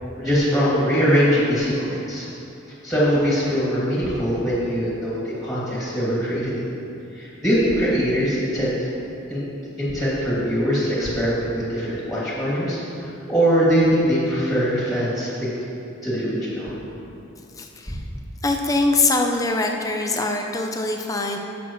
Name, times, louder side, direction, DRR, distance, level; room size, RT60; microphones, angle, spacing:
voice 1, 0.2-2.3 2.8-6.7 7.1-8.7 9.3-9.4 9.8-12.8 13.3-15.5 16.0-16.7, equal, ahead, -9 dB, 2.3 m, -22 dB
voice 2, 17.5-18.0 18.4-21.4, left 2 dB, 15° left, 2 dB, 0.5 m, -23 dB
16.5 x 6.2 x 3.1 m, 2.8 s
head